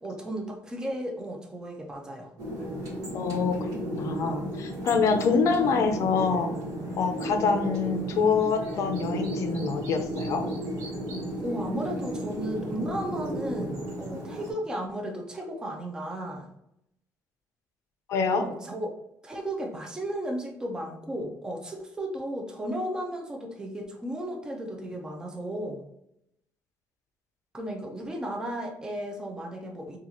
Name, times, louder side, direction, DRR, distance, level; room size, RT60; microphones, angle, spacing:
voice 1, 0.0-2.3 11.4-16.5 18.4-19.0 19.2-25.8 27.5-30.0, right 1 dB, 10° right, 1 dB, 0.5 m, -34 dB
sound 1, 2.4-14.5, equal, 75° right, 1.2 m, -33 dB
voice 2, 3.1-3.6 3.9-6.5 7.0-10.4 18.1-18.4, left 5 dB, 60° left, 6 dB, 0.5 m, -26 dB
2.9 x 2.4 x 3.8 m, 0.79 s
cardioid pair, 160°, 6 cm